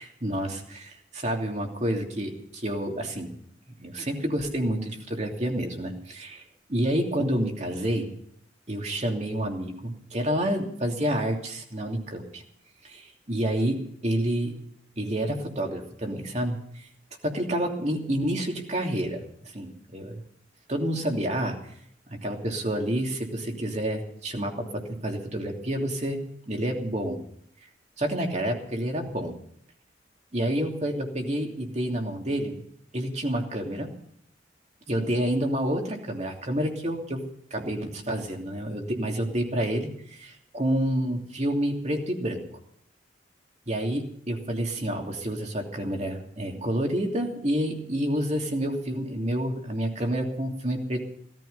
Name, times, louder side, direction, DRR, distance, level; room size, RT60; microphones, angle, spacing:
voice 1, 0.0-3.3 3.8-6.4 6.7-8.1 8.7-12.4 12.8-14.5 15.0-16.9 17.2-19.2 19.5-20.2 20.7-21.6 22.1-27.2 28.0-29.4 30.3-32.6 32.9-33.9 34.9-37.2 37.5-42.4 43.7-51.0, right 1 dB, 35° right, 2 dB, 3.0 m, -29 dB
17.5 x 14.0 x 5.5 m, 0.67 s
head